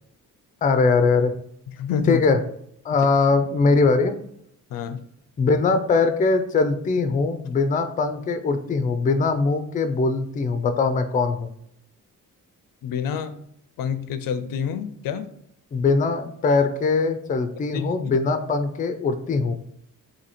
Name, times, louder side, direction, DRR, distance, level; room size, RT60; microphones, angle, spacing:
voice 1, 0.6-1.3 2.1-2.4 2.8-4.1 5.4-11.5 15.7-19.5, left 4 dB, 25° left, 10 dB, 0.3 m, -21 dB
voice 2, 1.8-2.2 4.7-5.0 12.8-13.4 13.8-15.3 17.7-18.2, left 7 dB, 90° left, 11 dB, 0.5 m, -28 dB
2.8 x 2.7 x 4.1 m, 0.70 s
cardioid pair, 110°, 33 cm